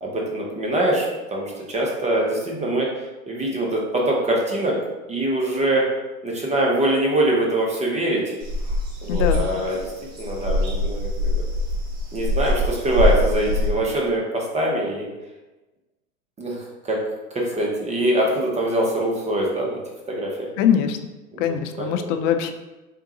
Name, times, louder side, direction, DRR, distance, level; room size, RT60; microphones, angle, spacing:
voice 1, 0.0-2.9 3.3-4.8 5.1-5.8 6.2-8.4 9.0-9.9 10.2-11.1 12.1-15.1 16.4-17.0 17.3-19.8 20.1-20.3 21.3-22.1, right 1 dB, 15° right, -2 dB, 0.7 m, -23 dB
sound 1, 8.4-13.7, left 1 dB, 35° right, 1.4 m, -23 dB
voice 2, 9.1-9.4 20.6-21.0 21.4-22.5, left 9 dB, 55° left, 8 dB, 0.5 m, -22 dB
3.7 x 3.6 x 2.9 m, 1.1 s
hypercardioid pair, 110°, 46 cm